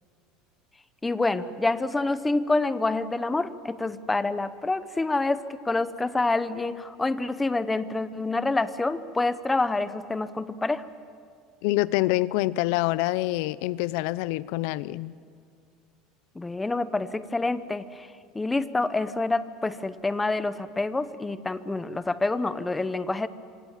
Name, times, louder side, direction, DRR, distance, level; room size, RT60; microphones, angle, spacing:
voice 1, 1.0-10.9 16.3-18.1 18.3-23.3, left 2 dB, 10° left, 13 dB, 0.8 m, -27 dB
voice 2, 11.6-15.1, left 18 dB, 70° left, 19 dB, 0.6 m, -26 dB
26.0 x 25.5 x 7.4 m, 2.2 s
cardioid pair, 155°, 0 cm